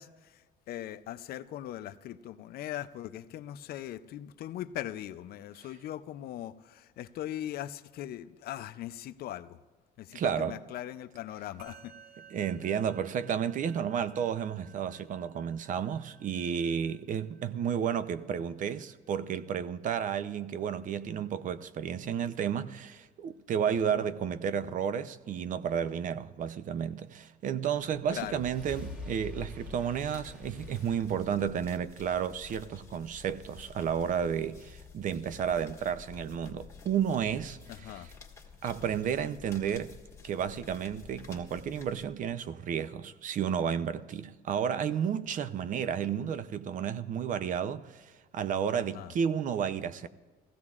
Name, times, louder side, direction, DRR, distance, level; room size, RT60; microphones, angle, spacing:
voice 1, 0.0-9.6 10.0-11.9 23.9-24.1 28.1-28.4 37.7-38.1 48.7-49.1, left 12 dB, 65° left, 0.5 m, -40 dB
voice 2, 10.1-10.6 12.3-38.1 38.6-39.9 40.2-50.1, right 8 dB, 50° right, 0.6 m, -32 dB
Musical instrument, 11.6-21.1, right 6 dB, 80° right, 3.4 m, -58 dB
sound 1, 28.1-32.5, left 3 dB, 5° right, 1.9 m, -45 dB
sound 2, 29.6-42.5, left 6 dB, 15° left, 1.7 m, -51 dB
19.0 x 15.5 x 2.4 m
cardioid pair, 110°, 17 cm